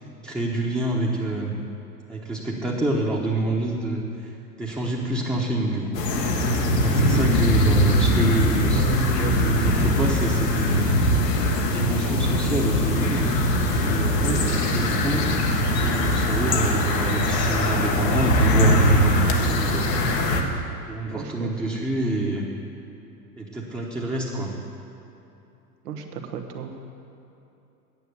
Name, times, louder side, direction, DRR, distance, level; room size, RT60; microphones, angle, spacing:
voice 1, 0.2-1.5 2.1-4.3 4.6-6.0 6.8-11.0 11.5-13.3 13.8-15.2 15.7-19.2 19.5-20.0 20.9-22.5 23.4-24.5, right 2 dB, 10° right, -5 dB, 1.1 m, -27 dB
sound 1, 5.9-20.4, equal, 75° left, 1.3 m, -21 dB
voice 2, 8.7-9.5 14.2-14.8 21.1-21.6 25.8-26.8, right 6 dB, 65° right, 5 dB, 1.3 m, -33 dB
9.4 x 8.2 x 6.9 m, 2.8 s
hypercardioid pair, 95°, 49 cm